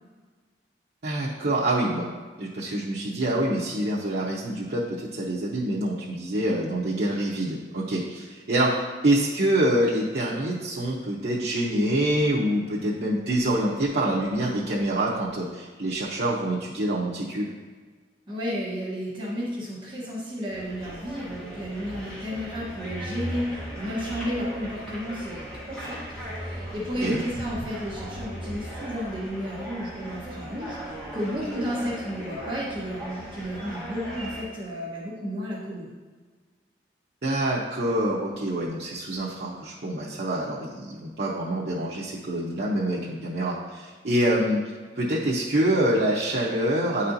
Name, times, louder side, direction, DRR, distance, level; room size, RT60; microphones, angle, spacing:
voice 1, 1.0-2.1 2.4-8.8 9.0-17.5 27.0-27.2 37.2-44.6 45.0-47.1, right 1 dB, 65° right, -6 dB, 0.7 m, -26 dB
voice 2, 18.3-26.0 26.3-35.9, equal, 25° right, -6 dB, 1.1 m, -32 dB
sound 1, 20.5-34.4, equal, 5° left, 1.2 m, -37 dB
9.5 x 4.2 x 2.7 m, 1.5 s
head